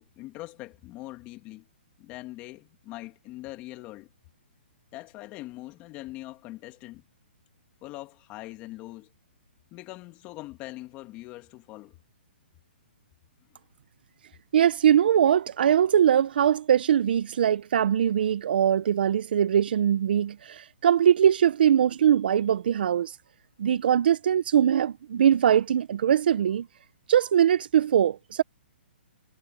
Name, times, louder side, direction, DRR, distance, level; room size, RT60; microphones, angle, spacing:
voice 1, 0.0-1.7 2.0-4.1 4.9-7.0 7.8-9.1 9.7-12.0, left 18 dB, 20° left, 2.7 m, -42 dB
voice 2, 14.5-23.2 23.6-26.7 27.1-28.4, right 9 dB, 60° right, 0.7 m, -22 dB
hypercardioid pair, 160°, 6 cm